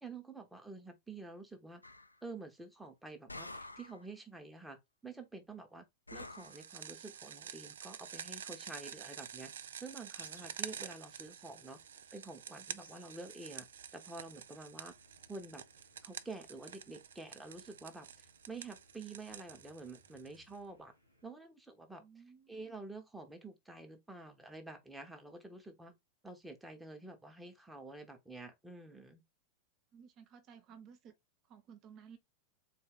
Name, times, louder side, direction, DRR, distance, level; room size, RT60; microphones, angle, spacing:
voice 1, 0.0-1.8 2.2-5.8 6.1-9.5 9.8-11.8 12.1-13.7 13.9-14.9 15.3-15.6 16.0-18.1 18.5-20.9 21.2-22.0 22.5-25.9 26.2-29.2, right 3 dB, 5° right, 1.1 m, -49 dB
sound 1, 1.8-2.2 3.3-4.0 6.1-6.6, left 2 dB, 80° left, 0.4 m, -48 dB
sound 2, 6.2-20.6, right 8 dB, 65° right, 0.3 m, -49 dB
sound 3, 8.7-21.3, equal, 85° right, 1.0 m, -67 dB
voice 2, 22.0-22.7 29.9-31.1 31.4-32.2, right 7 dB, 35° right, 0.8 m, -56 dB
4.0 x 2.7 x 3.8 m
figure-of-eight pair, 90°, 0 cm